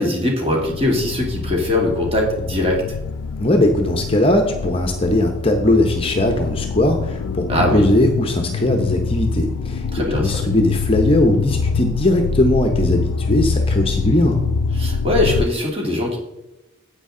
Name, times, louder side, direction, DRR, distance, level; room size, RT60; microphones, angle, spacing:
voice 1, 0.0-2.8 7.5-7.9 9.9-10.3 14.8-16.2, left 1 dB, 25° right, -1 dB, 2.3 m, -20 dB
sound 1, 0.6-15.5, left 5 dB, 75° left, 0.4 m, -25 dB
voice 2, 3.4-9.9 10.2-14.5, left 1 dB, 25° left, 4 dB, 0.8 m, -19 dB
9.7 x 8.1 x 3.8 m, 0.97 s
head